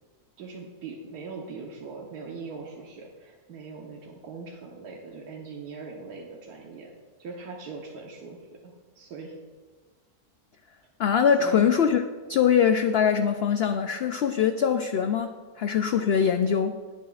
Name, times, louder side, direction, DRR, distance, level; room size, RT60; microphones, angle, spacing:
voice 1, 0.4-6.9 7.2-9.4 11.4-11.7, right 4 dB, 90° right, -2 dB, 1.6 m, -41 dB
voice 2, 11.0-12.0 12.3-15.3 15.6-16.7, left 7 dB, 75° left, 8 dB, 0.5 m, -22 dB
19.0 x 8.3 x 2.4 m, 1.5 s
omnidirectional pair, 1.6 m